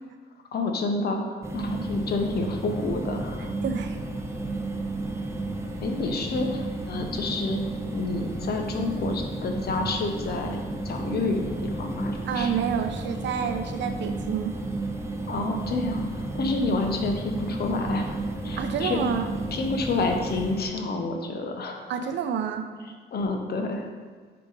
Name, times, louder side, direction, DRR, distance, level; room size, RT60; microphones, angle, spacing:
voice 1, 0.5-3.5 5.8-7.6 7.9-12.5 15.3-19.0 19.5-21.9 23.1-23.9, left 3 dB, 55° left, 3 dB, 0.8 m, -29 dB
sound 1, 1.4-20.6, right 2 dB, 15° right, 0.7 m, -32 dB
voice 2, 3.6-4.0 12.2-14.5 18.6-19.3 21.9-22.7, right 7 dB, 65° right, 7 dB, 0.6 m, -28 dB
5.1 x 4.7 x 3.9 m, 1.5 s
cardioid pair, 90°, 20 cm